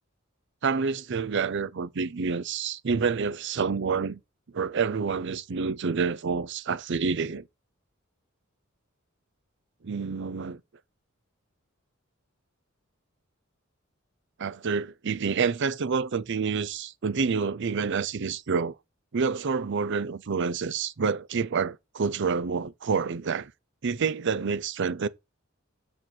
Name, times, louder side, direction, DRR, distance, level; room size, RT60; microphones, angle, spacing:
voice 1, 0.6-4.2 4.5-7.4 9.8-10.6 14.4-18.7 19.1-23.5 23.8-25.1, right 5 dB, 60° right, 0.6 m, -28 dB
7.2 x 5.1 x 6.1 m
head